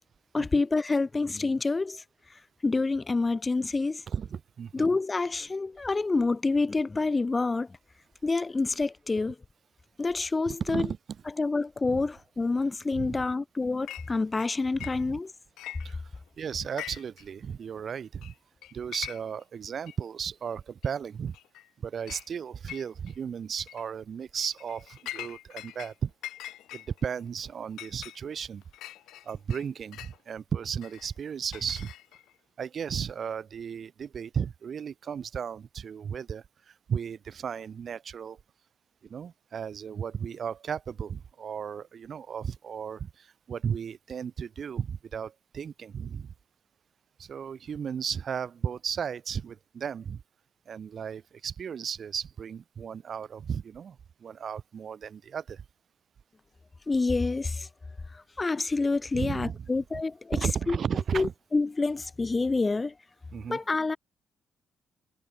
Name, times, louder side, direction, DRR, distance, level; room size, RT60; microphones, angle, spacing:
voice 1, 0.3-2.0 2.6-4.0 4.7-7.7 8.2-9.4 10.0-10.9 11.4-15.3 56.9-57.7 58.1-60.8 61.1-62.9 63.5-64.0, left 3 dB, 25° left, 0.6 m, -27 dB
voice 2, 4.1-4.9 10.5-11.0 11.9-12.0 12.9-13.2 14.8-15.2 15.8-16.0 16.4-18.3 18.7-21.4 21.8-26.1 26.7-28.6 29.2-31.9 32.6-38.4 39.0-46.3 47.2-50.2 50.7-55.6 59.1-59.7 60.3-61.3 63.3-63.6, right 7 dB, 50° right, 2.6 m, -35 dB
Chink clink, 13.9-14.1 14.4-15.3 15.6-16.3 16.6-17.2 17.5-17.6 18.2-18.3 18.6-19.4 19.9-20.0 20.8-20.9 21.3-21.7 22.1-22.3 22.7-23.2 23.6-23.8 24.4-25.9 26.2-30.2 30.8-32.3, left 14 dB, 85° left, 2.0 m, -43 dB
cardioid pair, 90°, 0 cm